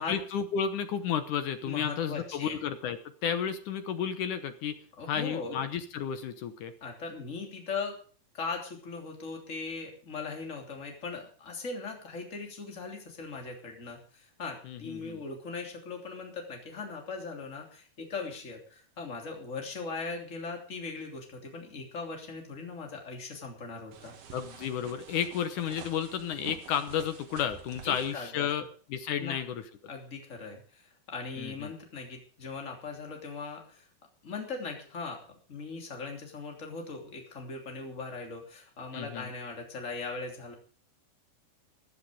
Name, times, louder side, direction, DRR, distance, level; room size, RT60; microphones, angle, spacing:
voice 1, 0.0-4.8 5.1-6.7 14.7-15.2 24.3-29.6 31.4-31.7 38.9-39.3, left 8 dB, 65° left, 10 dB, 2.2 m, -32 dB
voice 2, 1.6-2.6 5.0-5.6 6.8-8.0 8.3-24.1 27.8-28.5 29.2-29.4 29.9-33.9 34.2-35.2 35.5-40.5, left 4 dB, 20° left, 2 dB, 2.9 m, -39 dB
sound 1, 23.9-28.2, right 6 dB, 70° right, 4.0 m, -48 dB
15.5 x 11.0 x 5.1 m, 0.42 s
omnidirectional pair, 4.5 m